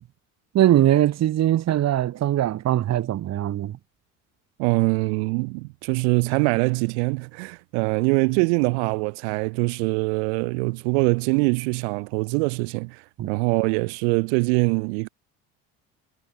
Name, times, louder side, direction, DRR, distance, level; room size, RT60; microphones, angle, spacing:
voice 1, 0.5-3.7 13.2-13.3, right 12 dB, 55° right, 3.6 m, -21 dB
voice 2, 4.6-15.1, right 34 dB, 85° right, 4.0 m, -23 dB
supercardioid pair, 100°, 33 cm